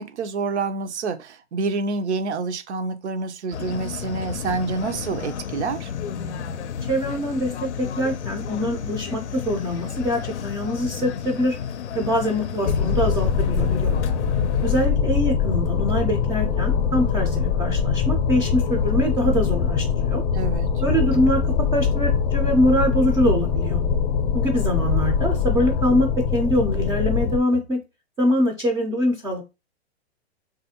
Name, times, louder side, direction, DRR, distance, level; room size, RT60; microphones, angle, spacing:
voice 1, 0.0-5.9 20.3-20.7, right 4 dB, 85° right, 0.6 m, -27 dB
sound 1, 3.5-14.9, left 7 dB, 85° left, 0.5 m, -32 dB
voice 2, 6.9-7.5 8.0-11.6 11.9-14.0 14.6-20.2 20.8-21.4 21.7-23.8 24.3-27.8 28.2-29.4, equal, 10° right, 0.3 m, -23 dB
sound 2, 12.6-27.4, left 6 dB, 40° left, 0.5 m, -22 dB
3.2 x 2.5 x 2.8 m
hypercardioid pair, 120°, 33 cm